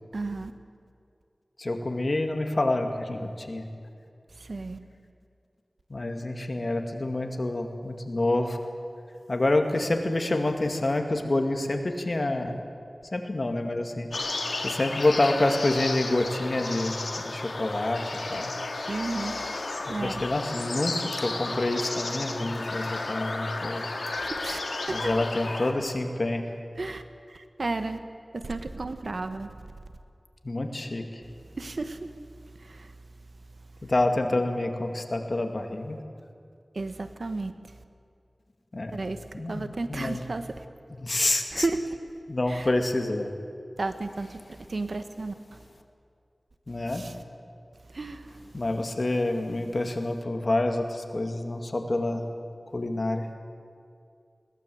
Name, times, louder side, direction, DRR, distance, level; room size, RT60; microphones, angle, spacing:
voice 1, 0.1-0.5 4.3-4.8 18.9-19.4 19.9-20.3 24.2-24.6 24.9-25.1 26.7-27.0 27.3-28.0 28.3-29.6 31.6-32.2 32.5-32.9 36.7-37.5 38.9-40.6 41.5-41.8 42.5-42.7 43.8-45.6 46.9-47.2 47.9-48.4, right 3 dB, 75° right, 9 dB, 1.2 m, -33 dB
voice 2, 1.6-3.7 5.9-8.6 9.3-12.6 13.1-14.1 14.6-18.0 18.3-18.5 20.0-23.8 24.9-26.4 30.4-31.0 33.8-36.0 38.7-39.0 39.3-40.2 41.0-41.6 42.3-43.3 46.7-47.0 48.5-52.2 52.7-53.3, left 2 dB, 50° left, 4 dB, 2.1 m, -27 dB
sound 1, 14.1-25.7, left 2 dB, 90° left, 1.8 m, -33 dB
21.0 x 18.5 x 7.8 m, 2.4 s
wide cardioid pair, 55°, 0 cm